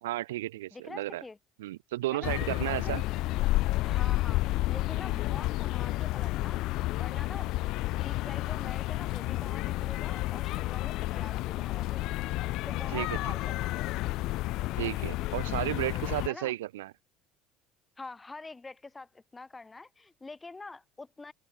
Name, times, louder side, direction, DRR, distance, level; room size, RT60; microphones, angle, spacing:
voice 1, 0.0-1.2 1.6-3.0 12.9-13.2 14.7-16.9, right 16 dB, 70° right, 1.5 m, -33 dB
voice 2, 0.7-1.4 2.1-2.4 2.7-3.0 3.8-7.5 8.0-12.2 12.7-13.8 16.3-16.6 18.0-21.3, left 3 dB, 20° left, 7.7 m, -46 dB
sound 1, 2.2-16.3, left 18 dB, 55° left, 0.8 m, -31 dB
figure-of-eight pair, 60°, 0 cm